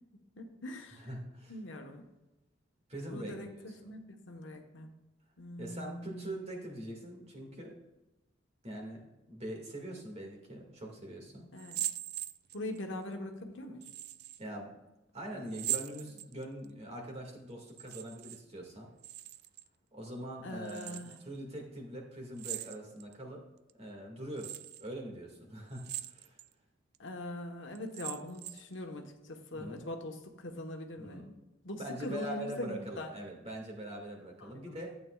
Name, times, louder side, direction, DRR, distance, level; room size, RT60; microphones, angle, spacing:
voice 1, 0.4-1.2 1.5-2.0 3.1-4.0 4.3-4.9 5.4-6.4 11.5-11.8 12.5-13.9 15.3-15.4 20.4-21.2 27.0-31.4 31.6-33.1 34.4-34.9, left 1 dB, 70° left, 3 dB, 1.2 m, -42 dB
voice 2, 1.0-1.5 2.9-3.5 5.6-7.8 8.6-11.5 14.4-14.8 15.1-18.9 19.9-23.4 23.7-26.4 29.6-29.8 31.0-31.2 31.8-34.9, right 1 dB, 35° right, 0 dB, 2.0 m, -43 dB
sound 1, 11.6-12.8 13.8-14.4 15.5-16.7 17.7-18.4 18.7-19.7 20.6-21.2 22.4-23.1 23.7-23.8 24.4-24.8 25.7-26.5 26.9-27.0 27.7-28.7, right 13 dB, 55° right, 0.4 m, -40 dB
12.5 x 8.5 x 2.4 m, 1.0 s
head